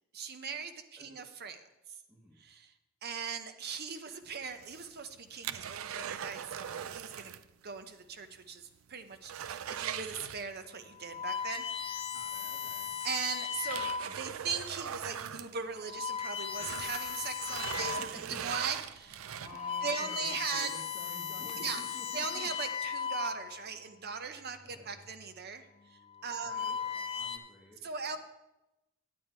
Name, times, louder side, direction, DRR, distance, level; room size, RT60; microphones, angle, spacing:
voice 1, 0.1-1.6 2.4-2.7 3.0-7.4 7.6-12.0 13.0-19.2 19.8-20.7 21.6-21.8 22.1-25.6 25.9-26.8 27.8-28.2, right 5 dB, 50° right, 9 dB, 0.7 m, -39 dB
voice 2, 2.1-2.4 12.1-13.0 17.7-18.4 19.4-22.5 24.6-25.1 26.4-27.9, equal, 10° right, -3 dB, 1.3 m, -52 dB
sound 1, 4.5-7.5 7.8-7.9 8.4-8.5 8.8-10.8 12.3-12.4 13.0-16.1 16.5-19.8 20.3-20.4, right 9 dB, 70° right, 0.4 m, -40 dB
sound 2, 10.0-10.3 10.9-14.3 15.0-15.2 15.7-18.2 18.7-18.8 19.3-23.8 24.8-25.2 26.0-27.4, left 7 dB, 25° left, 0.4 m, -37 dB
9.5 x 8.5 x 4.5 m, 0.96 s
head